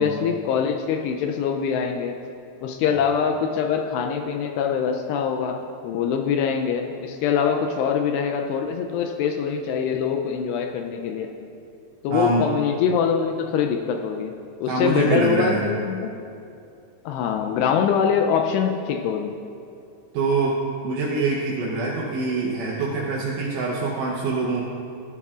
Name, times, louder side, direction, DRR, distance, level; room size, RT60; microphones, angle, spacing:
voice 1, 0.0-2.2 2.6-11.3 12.0-14.3 14.6-16.1 17.1-19.4, left 7 dB, 90° left, 3 dB, 2.4 m, -24 dB
voice 2, 12.1-12.5 14.7-15.7 20.1-20.6 20.8-24.7, right 3 dB, 75° right, -3 dB, 2.9 m, -24 dB
16.5 x 11.0 x 2.4 m, 2.5 s
omnidirectional pair, 5.4 m